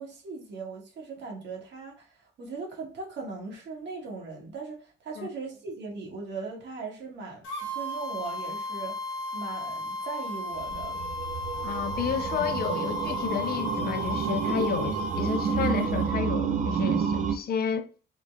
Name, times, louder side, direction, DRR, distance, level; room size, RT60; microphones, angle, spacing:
voice 1, 0.0-2.1 2.4-9.0 9.3-11.0, right 4 dB, 60° right, 1.3 m, -39 dB
sound 1, 7.4-16.1, left 2 dB, 85° left, 1.0 m, -35 dB
sound 2, 10.5-17.4, right 7 dB, 40° right, 0.4 m, -29 dB
voice 2, 11.6-17.9, left 8 dB, 50° left, 0.4 m, -31 dB
3.8 x 2.1 x 3.3 m
cardioid pair, 90°, 20 cm